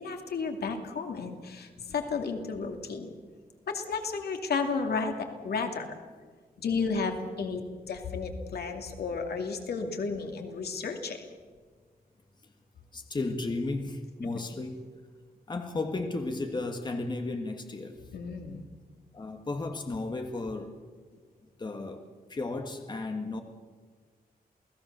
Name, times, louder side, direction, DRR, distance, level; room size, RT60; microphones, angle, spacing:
voice 1, 0.0-3.1 3.7-5.9 6.6-11.2 18.1-18.6, left 4 dB, 85° left, 4 dB, 2.5 m, -33 dB
voice 2, 12.9-14.9 15.5-18.0 19.1-20.7 21.6-22.0 22.3-23.4, left 2 dB, 30° left, 5 dB, 1.7 m, -34 dB
28.5 x 18.0 x 6.8 m, 1.5 s
wide cardioid pair, 170°, 16 cm